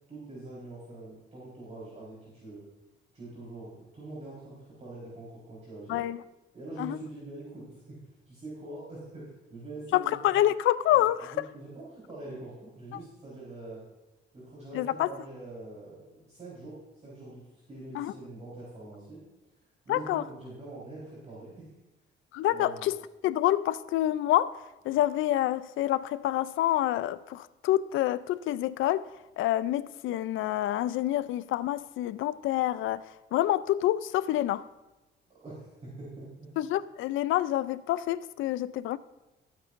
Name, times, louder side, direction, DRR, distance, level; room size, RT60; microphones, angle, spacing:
voice 1, 0.1-2.6 3.1-6.0 6.5-8.0 8.3-10.4 10.9-13.8 14.3-19.2 19.8-21.7 22.5-22.9 35.3-36.5, right 2 dB, 35° right, -7 dB, 4.2 m, -44 dB
voice 2, 9.9-11.2 14.7-15.1 17.9-18.1 19.9-20.2 22.3-23.0 23.2-24.6 24.8-29.1 29.4-34.6 36.6-39.0, left 13 dB, 80° left, 16 dB, 0.5 m, -27 dB
16.0 x 8.9 x 2.6 m, 1.0 s
cardioid pair, 90°, 20 cm